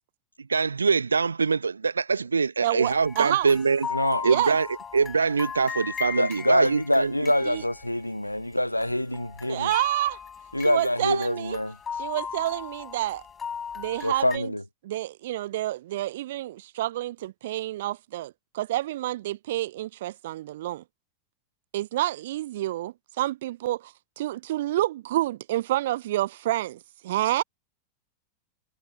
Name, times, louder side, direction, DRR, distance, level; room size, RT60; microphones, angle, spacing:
voice 1, 0.4-3.9 4.2-4.7 4.9-7.3, right 5 dB, 75° right, 1.3 m, -24 dB
voice 2, 2.6-3.6 4.2-4.6 7.5-7.6 9.5-10.2 10.6-11.6 12.0-13.2 13.7-14.5 14.8-20.8 21.7-27.4, right 15 dB, 55° right, 0.8 m, -29 dB
sound 1, 2.8-8.5 8.8-14.4, left 7 dB, 20° left, 6.1 m, -38 dB
voice 3, 3.9-4.3 6.1-9.7 10.5-11.8 14.0-14.6, left 1 dB, 85° left, 0.6 m, -25 dB
figure-of-eight pair, 90°, 0 cm